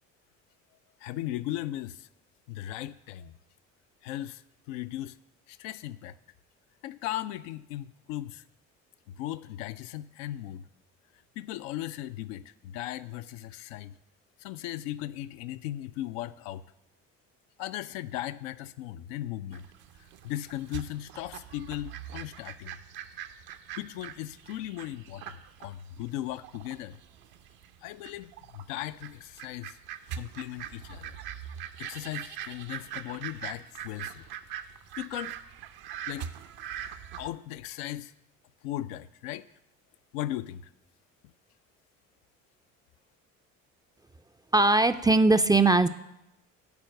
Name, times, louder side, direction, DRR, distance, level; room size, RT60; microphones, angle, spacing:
voice 1, 1.0-2.1 2.5-3.3 4.0-5.2 5.5-6.2 6.8-8.4 9.1-10.7 11.4-14.0 14.4-16.6 17.6-19.7 20.0-22.8 23.7-27.0 27.8-29.8 30.1-31.2 31.8-34.3 35.0-35.4 36.1-36.3 37.2-38.1 38.6-39.5 40.1-40.7, left 13 dB, 75° left, 11 dB, 0.5 m, -37 dB
sound 1, 19.5-37.3, right 9 dB, 65° right, 0.8 m, -42 dB
voice 2, 44.5-45.9, right 2 dB, 10° right, 10 dB, 0.4 m, -20 dB
9.6 x 4.4 x 7.6 m, 0.89 s
hypercardioid pair, 55°, 39 cm